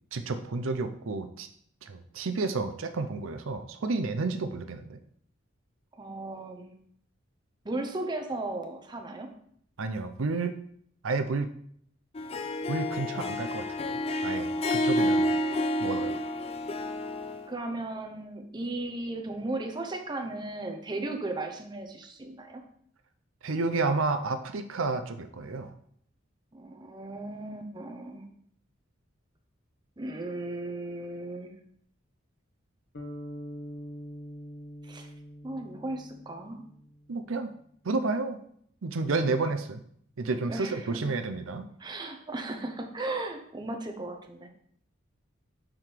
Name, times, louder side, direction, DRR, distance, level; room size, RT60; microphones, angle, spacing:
voice 1, 0.1-1.5 1.8-5.0 9.8-10.5 11.0-11.5 12.7-15.3 15.8-16.1 23.4-25.7 37.1-37.5 37.8-38.4 38.8-39.8 40.2-41.7, right 3 dB, 80° right, 8 dB, 0.6 m, -31 dB
voice 2, 5.9-6.8 7.6-9.3 17.5-22.6 26.5-28.3 30.0-31.6 34.8-35.1 35.4-36.7 40.5-41.1 41.8-44.5, right 2 dB, 20° right, 4 dB, 0.7 m, -36 dB
Harp, 12.1-17.5, left 1 dB, 30° left, 0.4 m, -29 dB
sound 1, 32.9-37.2, equal, 55° left, 1.2 m, -44 dB
5.8 x 5.0 x 4.6 m, 0.65 s
head